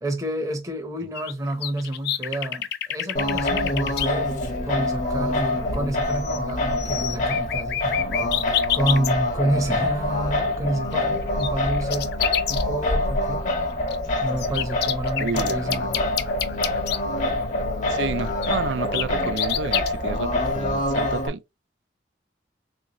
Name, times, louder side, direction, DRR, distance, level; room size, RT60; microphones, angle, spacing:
voice 1, 0.0-8.0 8.7-12.1 12.5-13.4 14.2-16.0 20.3-20.4, right 1 dB, 20° right, 0.8 m, -29 dB
sound 1, 1.1-4.1 5.7-5.8 6.1-6.5 6.8-9.1 10.9-12.6 13.9-17.0 18.4-19.9, left 11 dB, 60° left, 0.4 m, -28 dB
Singing, 3.1-21.3, left 1 dB, 45° left, 0.8 m, -25 dB
voice 2, 15.1-15.8 17.9-21.4, right 5 dB, 75° right, 0.4 m, -30 dB
3.5 x 2.6 x 2.9 m
head